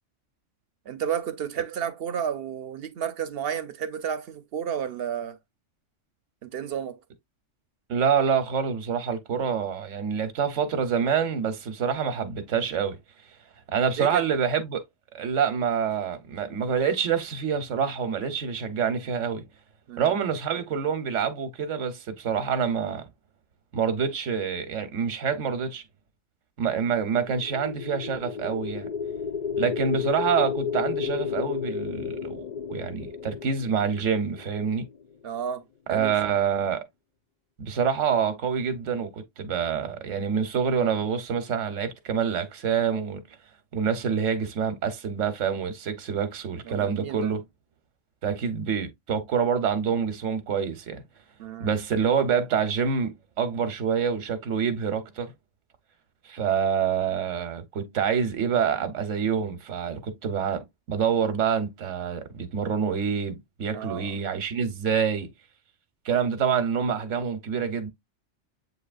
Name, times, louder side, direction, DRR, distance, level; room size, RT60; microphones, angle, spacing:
voice 1, 0.9-5.4 6.4-7.0 14.0-14.2 19.9-20.1 35.2-35.6 35.9-36.2 46.6-47.3 51.4-51.7 63.7-64.2, right 8 dB, 65° right, 0.7 m, -32 dB
voice 2, 7.9-13.0 13.7-14.8 15.1-19.5 20.0-23.1 23.7-25.8 26.6-28.9 29.6-32.4 32.7-34.9 35.9-36.8 37.6-43.2 43.7-47.4 48.2-51.0 51.6-55.3 56.2-65.3 66.0-67.9, right 7 dB, 90° right, 1.2 m, -26 dB
sound 1, 27.1-35.2, left 6 dB, 50° left, 0.6 m, -32 dB
8.0 x 2.8 x 2.4 m
omnidirectional pair, 1.2 m